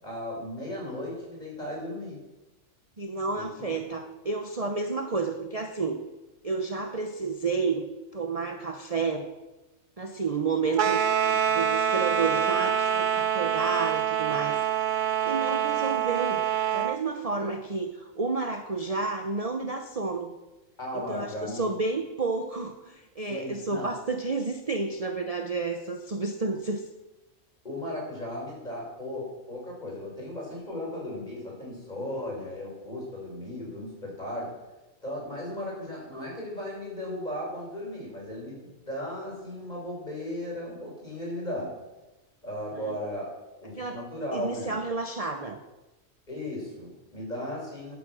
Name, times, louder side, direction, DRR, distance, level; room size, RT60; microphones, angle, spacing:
voice 1, 0.0-2.2 3.3-3.7 17.4-17.5 20.8-21.7 23.3-23.9 27.6-34.5 35.0-41.7 42.4-43.3 43.6-44.8 46.3-47.9, left 1 dB, 30° left, -3 dB, 6.3 m, -36 dB
voice 2, 3.0-6.0 6.4-9.3 10.0-14.7 15.2-16.4 16.7-20.4 20.9-26.8 42.7-43.0 43.7-44.0 44.3-45.6, right 4 dB, 30° right, 5 dB, 0.9 m, -31 dB
sound 1, 10.7-17.0, right 9 dB, 50° right, 0.6 m, -25 dB
15.5 x 10.0 x 6.3 m, 1.1 s
omnidirectional pair, 1.4 m